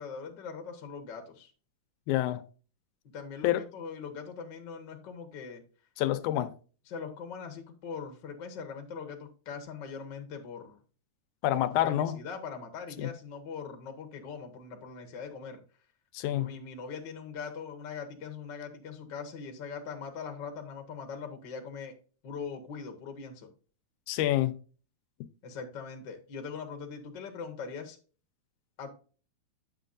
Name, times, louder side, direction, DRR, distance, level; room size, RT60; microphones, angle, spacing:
voice 1, 0.0-1.5 3.1-5.6 6.9-10.8 11.5-15.6 16.3-21.9 22.2-23.5 25.4-28.0 28.8-28.9, left 5 dB, 50° left, 1.5 m, -41 dB
voice 2, 2.1-2.4 3.4-3.6 6.0-6.5 11.4-12.2 13.0-13.1 16.1-16.5 24.1-24.6, left 13 dB, 85° left, 2.1 m, -27 dB
9.0 x 7.2 x 2.5 m
omnidirectional pair, 3.4 m